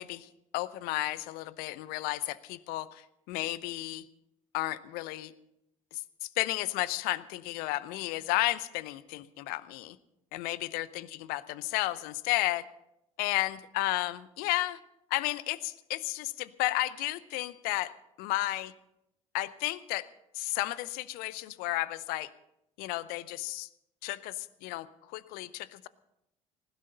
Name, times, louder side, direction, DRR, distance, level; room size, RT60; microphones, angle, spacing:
voice 1, 0.0-4.0 4.5-5.3 5.9-10.0 10.3-12.6 13.2-14.8 15.1-18.7 19.3-20.1 20.3-22.3 22.8-23.7 24.0-25.9, left 18 dB, 60° left, 18 dB, 0.7 m, -33 dB
19.5 x 15.5 x 4.0 m, 0.83 s
figure-of-eight pair, 60°, 17 cm